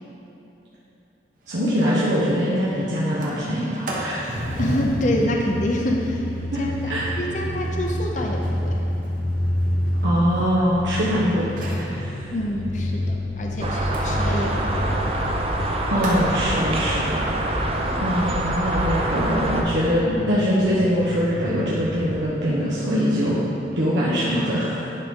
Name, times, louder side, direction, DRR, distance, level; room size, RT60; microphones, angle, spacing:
Sliding door, 1.5-1.6 1.9-2.0 2.3-2.6 3.0-11.0 11.4-11.9 13.9-16.3, right 1 dB, 50° right, 1.1 m, -34 dB
voice 1, 1.5-4.4 6.5-6.6 6.9-7.1 10.0-11.5 11.7-12.3 15.9-17.2 17.6-17.7 18.0-23.4 23.8-24.8, equal, 90° right, -8 dB, 1.1 m, -23 dB
sound 1, 4.4-22.2, equal, 80° left, 0.8 m, -29 dB
voice 2, 4.6-6.2 6.6-8.8 12.3-14.9 17.8-18.1, left 1 dB, 45° left, 0 dB, 0.6 m, -27 dB
sound 2, 13.6-19.6, right 1 dB, 35° right, 0.6 m, -25 dB
10.5 x 3.7 x 5.3 m, 3.0 s
head